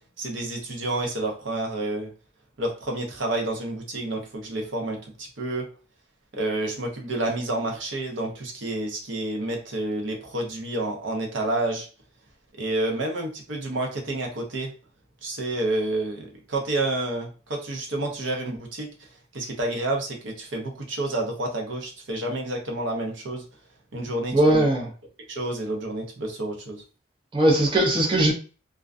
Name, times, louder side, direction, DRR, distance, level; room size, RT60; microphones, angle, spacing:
voice 1, 0.2-2.1 2.6-5.7 6.3-11.9 12.6-14.7 15.2-19.1 19.3-23.4 23.9-24.7 25.3-26.8, right 2 dB, 65° right, 1 dB, 0.7 m, -29 dB
voice 2, 24.3-24.9 27.3-28.3, right 1 dB, 25° right, -1 dB, 0.5 m, -19 dB
2.4 x 2.2 x 2.4 m, 0.36 s
head